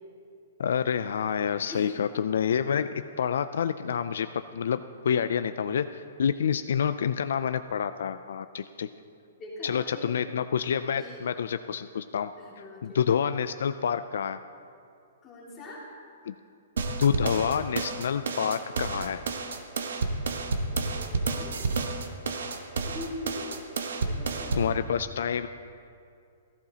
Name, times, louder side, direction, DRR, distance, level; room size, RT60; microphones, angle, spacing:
voice 1, 0.6-8.9 9.6-12.3 12.6-14.4 16.2-16.3 17.0-19.2 24.6-25.5, left 7 dB, 60° left, 11 dB, 0.3 m, -28 dB
voice 2, 9.4-10.1 10.9-11.2 12.4-13.0 15.2-15.8 20.7-21.8 22.8-23.6 24.0-24.8, left 1 dB, 10° left, -7 dB, 2.3 m, -42 dB
sound 1, 16.8-24.8, right 3 dB, 75° right, 1.0 m, -30 dB
16.0 x 14.5 x 2.9 m, 2.5 s
hypercardioid pair, 180°, 0 cm